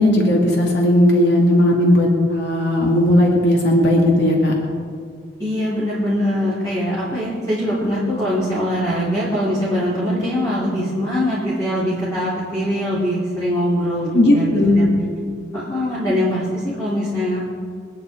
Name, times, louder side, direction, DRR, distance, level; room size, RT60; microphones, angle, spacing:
voice 1, 0.0-4.5 14.1-14.8, left 1 dB, 70° left, -1 dB, 2.4 m, -16 dB
voice 2, 5.4-14.9 15.5-17.4, equal, 15° left, -10 dB, 3.9 m, -22 dB
26.0 x 10.0 x 4.6 m, 2.1 s
head